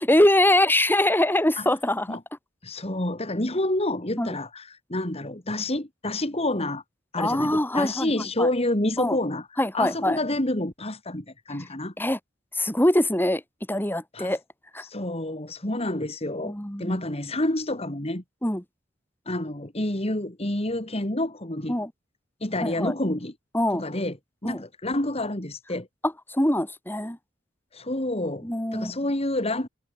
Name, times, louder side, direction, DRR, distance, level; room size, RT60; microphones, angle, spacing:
voice 1, 0.1-2.2 4.2-4.3 7.2-8.5 9.0-9.2 9.6-10.2 12.0-12.2 12.6-13.4 13.7-14.4 14.7-14.8 16.4-17.0 18.4-18.6 21.7-21.9 22.6-22.9 23.5-23.8 24.4-24.6 26.0-27.2 28.4-28.9, left 1 dB, 10° left, 3.8 m, -23 dB
voice 2, 2.6-6.8 7.1-9.5 9.7-11.9 14.1-14.3 14.8-18.2 19.3-21.8 22.4-23.3 23.7-24.2 24.4-25.9 27.7-29.7, left 1 dB, 35° left, 3.2 m, -28 dB
head